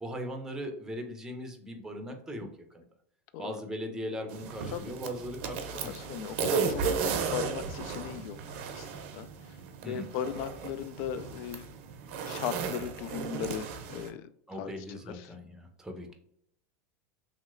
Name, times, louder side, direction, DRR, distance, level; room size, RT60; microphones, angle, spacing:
voice 1, 0.0-2.5 2.7-2.8 3.4-5.9 9.8-10.1 14.5-16.1, equal, 5° right, 3 dB, 0.6 m, -39 dB
sound 1, 4.3-14.1, right 6 dB, 65° right, 0.6 m, -35 dB
voice 2, 5.8-8.4 8.7-9.3 9.9-11.6 12.3-14.3 14.5-15.3, left 9 dB, 60° left, 13 dB, 0.3 m, -37 dB
3.0 x 2.9 x 2.5 m, 0.69 s
supercardioid pair, 110°, 8 cm